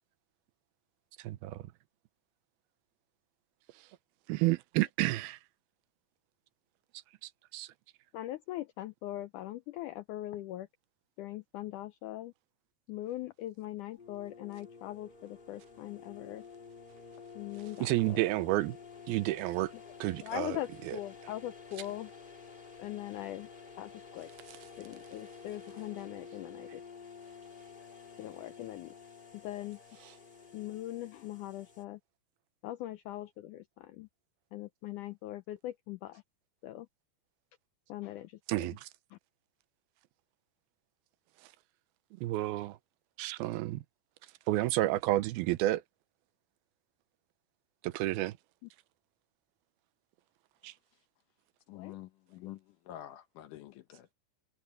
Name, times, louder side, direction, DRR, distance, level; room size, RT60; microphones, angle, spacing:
voice 1, 1.2-1.7 4.3-5.4 7.2-7.7 17.8-18.8 19.1-19.7 20.0-20.6 20.8-21.0 38.5-38.9 42.2-42.8 43.2-43.8 44.5-45.8 47.8-48.4 50.6-50.7, right 17 dB, 90° right, 2.6 m, -30 dB
voice 2, 8.1-10.7 11.2-12.3 12.9-16.4 17.3-18.3 20.2-22.1 22.8-23.5 23.8-24.3 24.8-26.8 28.2-28.9 29.3-29.8 30.5-32.0 32.6-34.1 34.5-36.2 36.6-36.9 37.9-38.7 39.1-39.2 51.8-52.0, left 14 dB, 85° left, 1.8 m, -41 dB
sound 1, 14.0-31.8, left 5 dB, 30° left, 1.0 m, -51 dB
voice 3, 51.7-54.1, left 13 dB, 70° left, 2.2 m, -48 dB
omnidirectional pair, 4.3 m